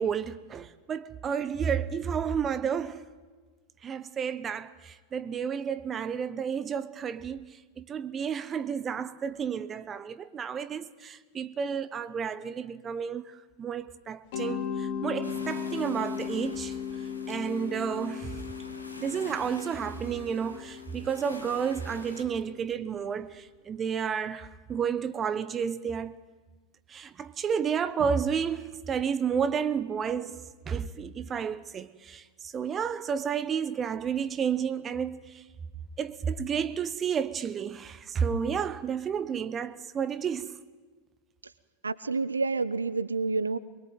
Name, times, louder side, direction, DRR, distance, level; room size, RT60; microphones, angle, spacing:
voice 1, 0.0-3.0 3.8-16.7 17.3-18.4 19.0-26.2 26.9-35.4 36.0-40.6, right 7 dB, 25° right, 0.9 m, -31 dB
Mallet percussion, 14.3-23.1, left 7 dB, 50° left, 3.8 m, -37 dB
sound 1, 15.2-22.2, left 1 dB, 85° left, 2.9 m, -47 dB
voice 2, 41.8-43.6, right 3 dB, 75° right, 0.8 m, -28 dB
23.0 x 22.0 x 9.2 m
figure-of-eight pair, 90°, 0 cm